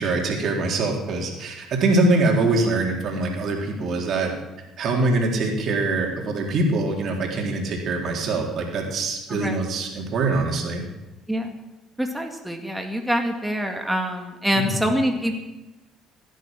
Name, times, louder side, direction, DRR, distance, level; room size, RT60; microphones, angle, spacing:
voice 1, 0.0-4.3 4.8-10.8 14.5-14.8, right 2 dB, 55° right, 1 dB, 3.7 m, -23 dB
voice 2, 12.0-15.4, equal, 5° right, 3 dB, 2.2 m, -25 dB
16.5 x 10.0 x 7.7 m, 1.1 s
hypercardioid pair, 55°, 0 cm